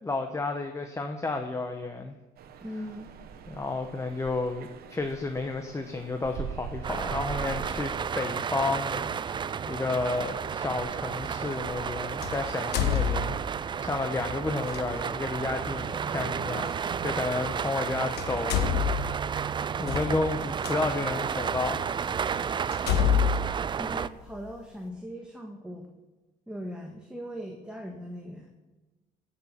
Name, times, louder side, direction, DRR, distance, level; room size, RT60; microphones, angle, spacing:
voice 1, 0.0-2.1 3.5-16.7 17.0-19.2 19.8-21.9, left 3 dB, 15° left, 5 dB, 1.0 m, -32 dB
sound 1, 2.4-13.5, right 8 dB, 65° right, 1.2 m, -44 dB
voice 2, 2.6-3.1 23.0-23.3 23.8-25.9 26.5-28.5, equal, 5° right, 1 dB, 1.5 m, -39 dB
sound 2, 6.8-24.1, right 7 dB, 30° right, 0.4 m, -32 dB
sound 3, 10.1-10.3 12.2-13.7 14.6-14.8 16.7-16.8 17.7-17.9 18.1-20.7 21.4-21.5 22.0-22.1 22.7-24.5, left 8 dB, 75° left, 1.2 m, -28 dB
16.5 x 7.0 x 5.7 m, 1.2 s
cardioid pair, 110°, 17 cm